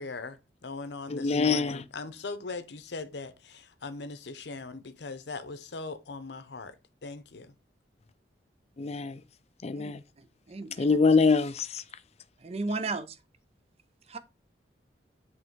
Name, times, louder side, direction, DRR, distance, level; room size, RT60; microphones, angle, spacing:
voice 1, 0.0-6.7 7.0-7.5, left 3 dB, 65° left, 0.7 m, -40 dB
voice 2, 1.1-1.8 8.8-9.2 9.6-10.0 10.8-11.8, left 4 dB, 35° left, 0.4 m, -24 dB
voice 3, 9.7-10.8 12.4-13.2 14.1-14.2, right 3 dB, 35° right, 0.5 m, -35 dB
7.8 x 3.3 x 4.6 m
head